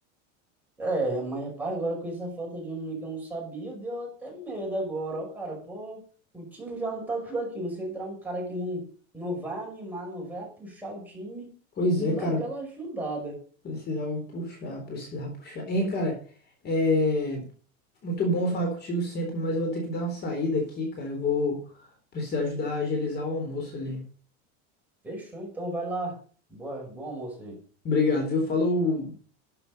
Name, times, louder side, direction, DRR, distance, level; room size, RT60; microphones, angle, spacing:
voice 1, 0.8-6.0 6.3-8.9 9.1-11.5 12.0-13.4 25.0-26.2 26.5-27.6, right 1 dB, 5° right, -2 dB, 5.9 m, -34 dB
voice 2, 11.8-12.4 13.6-16.2 16.6-17.4 18.0-21.6 22.1-24.0 27.8-29.1, left 2 dB, 30° left, 2 dB, 4.0 m, -27 dB
13.0 x 8.0 x 5.5 m, 0.41 s
supercardioid pair, 150°, 34 cm